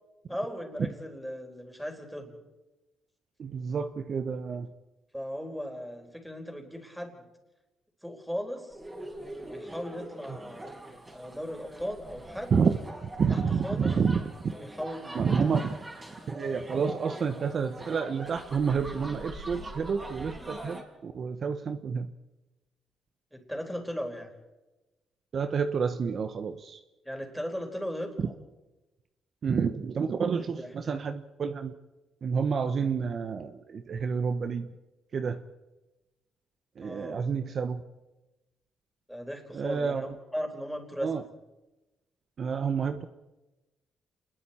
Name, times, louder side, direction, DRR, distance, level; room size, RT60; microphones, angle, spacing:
voice 1, 0.3-2.3 5.1-7.2 8.0-8.8 9.5-10.7 11.1-12.5 13.3-13.9 14.6-15.4 15.7-15.8 23.3-24.3 27.0-28.3 30.3-31.0 36.8-37.3 39.1-41.3, equal, ahead, 3 dB, 4.4 m, -37 dB
voice 2, 3.4-4.7 12.5-12.8 13.0-14.2 15.1-15.7 16.3-22.1 25.3-26.8 29.4-31.7 32.2-34.7 35.1-35.4 36.8-37.8 39.5-40.1 41.0-41.2 42.4-43.1, right 6 dB, 50° right, 9 dB, 1.0 m, -29 dB
sound 1, 8.7-20.8, right 1 dB, 20° right, 4.8 m, -43 dB
28.5 x 21.0 x 4.4 m, 1.0 s
cardioid pair, 90°, 0 cm